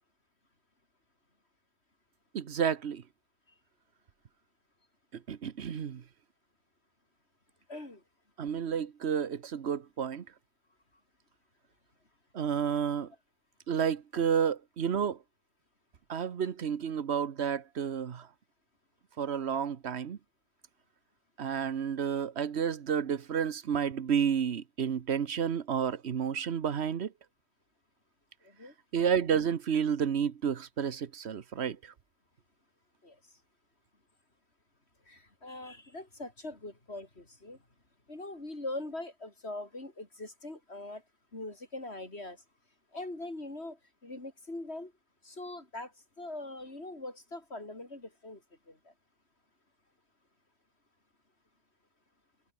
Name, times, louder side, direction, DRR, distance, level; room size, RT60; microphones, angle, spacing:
voice 1, 2.3-3.0 5.3-6.0 8.4-10.2 12.3-13.1 13.7-15.2 16.1-18.3 19.2-20.2 21.4-27.1 28.9-31.8, right 7 dB, 80° right, 1.3 m, -30 dB
voice 2, 7.7-8.0 28.4-28.7 33.0-33.2 35.1-37.6 38.1-41.0 41.3-42.4 42.9-44.9 45.2-48.4 48.7-48.9, left 2 dB, 80° left, 5.5 m, -42 dB
omnidirectional pair, 1.1 m